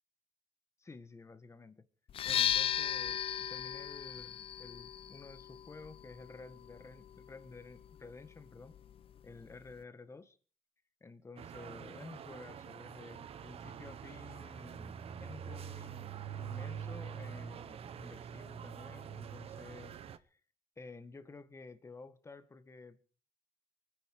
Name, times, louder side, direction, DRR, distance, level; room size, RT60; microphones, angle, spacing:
voice 1, 0.8-1.9 2.2-8.7 9.2-10.4 11.0-20.4 20.8-23.0, left 3 dB, 25° left, 1.7 m, -52 dB
sound 1, 2.1-9.8, left 9 dB, 50° left, 0.7 m, -38 dB
sound 2, 11.4-20.2, right 8 dB, 55° right, 1.0 m, -45 dB
24.0 x 9.9 x 4.9 m
cardioid pair, 105°, 12 cm